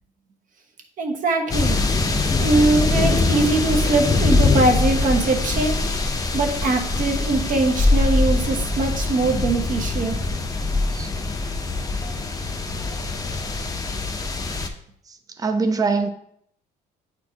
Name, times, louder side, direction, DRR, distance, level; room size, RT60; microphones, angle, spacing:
voice 1, 1.0-1.8 2.4-5.9 6.3-10.2, right 2 dB, 50° right, 3 dB, 1.2 m, -22 dB
sound 1, 1.5-14.7, left 3 dB, 20° left, 0.7 m, -22 dB
voice 2, 15.4-16.1, right 4 dB, 20° right, 7 dB, 0.6 m, -22 dB
8.6 x 4.3 x 2.9 m, 0.68 s
cardioid pair, 110°, 17 cm